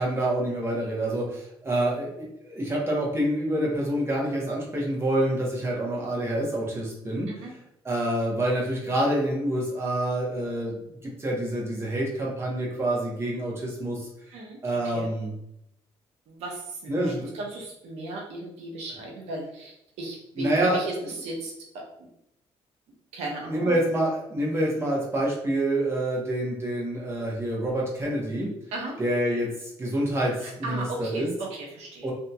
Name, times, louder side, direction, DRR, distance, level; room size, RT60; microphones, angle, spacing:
voice 1, 0.0-7.3 7.8-14.1 14.6-15.3 16.9-17.3 20.4-20.8 23.5-28.5 29.0-31.3 32.0-32.1, right 1 dB, 25° right, -3 dB, 0.9 m, -27 dB
voice 2, 16.3-22.1 23.1-23.8 28.7-29.0 30.4-32.1, right 2 dB, 85° right, -1 dB, 0.7 m, -36 dB
2.7 x 2.7 x 2.3 m, 0.79 s
cardioid pair, 115°, 11 cm